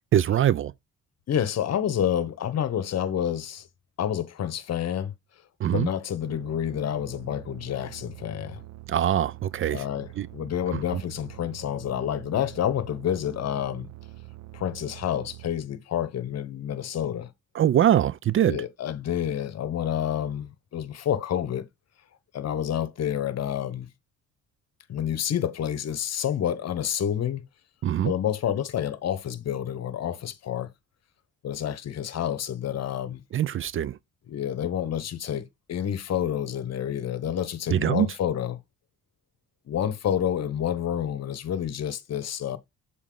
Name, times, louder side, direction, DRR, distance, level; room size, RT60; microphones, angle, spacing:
voice 1, 0.1-0.7 5.6-5.9 8.9-9.8 10.2-10.3 10.7-11.0 17.5-18.6 27.8-28.1 33.3-34.0 37.7-38.1, right 10 dB, 45° right, 0.4 m, -23 dB
voice 2, 1.3-3.7 4.0-5.1 5.7-8.6 9.7-13.9 14.5-17.3 18.4-21.6 22.3-23.9 24.9-27.4 28.0-30.7 31.4-33.2 34.3-38.6 39.7-42.6, left 10 dB, 55° left, 1.0 m, -29 dB
sound 1, 6.2-15.5, right 18 dB, 60° right, 0.8 m, -45 dB
7.2 x 4.3 x 3.9 m
cardioid pair, 90°, 30 cm